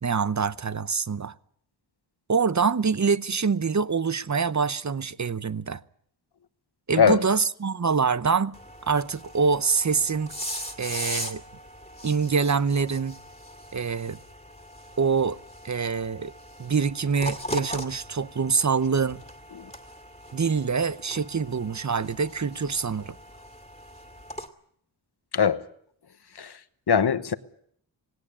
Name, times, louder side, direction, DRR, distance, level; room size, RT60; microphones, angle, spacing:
voice 1, 0.0-1.3 2.3-5.8 6.9-10.3 10.8-11.4 12.0-13.2 13.7-14.2 15.0-15.4 15.6-16.3 16.6-19.2 20.3-23.2, right 5 dB, 40° right, 0.8 m, -25 dB
sound 1, 8.5-24.5, equal, 15° left, 2.4 m, -40 dB
voice 2, 26.9-27.3, left 6 dB, 55° left, 1.1 m, -21 dB
18.0 x 17.5 x 9.8 m
wide cardioid pair, 65°, 46 cm